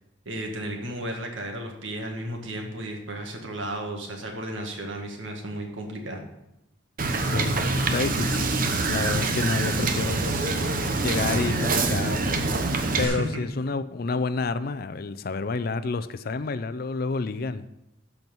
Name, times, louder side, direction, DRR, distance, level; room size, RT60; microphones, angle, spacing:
voice 1, 0.3-6.2 13.0-13.3, right 1 dB, 85° right, 2 dB, 1.9 m, -34 dB
Wind / Boat Water vehicle, 7.0-13.1, right 3 dB, 45° right, 0.9 m, -25 dB
voice 2, 7.2-8.5 8.9-10.6 11.0-17.6, left 4 dB, 50° left, 13 dB, 0.5 m, -29 dB
13.5 x 4.6 x 5.4 m, 0.87 s
head